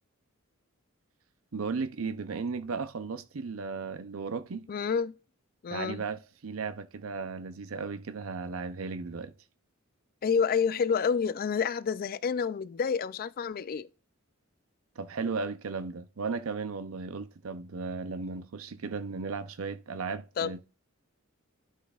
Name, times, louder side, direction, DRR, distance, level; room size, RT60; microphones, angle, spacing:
voice 1, 1.5-4.7 5.7-9.3 15.0-20.6, right 4 dB, 85° right, 0.6 m, -35 dB
voice 2, 4.7-5.1 5.6-6.0 10.2-13.9 20.4-20.5, left 6 dB, 45° left, 0.3 m, -29 dB
11.5 x 5.8 x 2.4 m
head